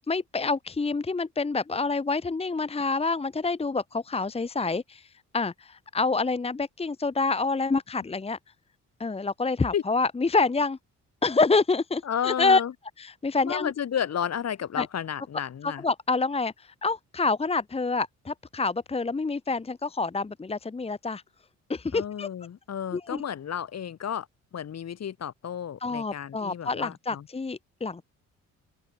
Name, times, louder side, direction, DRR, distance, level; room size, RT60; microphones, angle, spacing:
voice 1, 0.0-5.1 5.3-8.4 9.0-10.8 11.2-12.6 13.0-13.7 14.8-14.9 15.6-21.2 21.7-22.3 22.9-23.2 25.8-28.0, left 3 dB, 20° left, 1.1 m, -27 dB
voice 2, 12.0-12.7 13.4-15.8 21.9-24.3 24.5-27.3, left 9 dB, 60° left, 6.3 m, -32 dB
open air
cardioid pair, 90°, 30 cm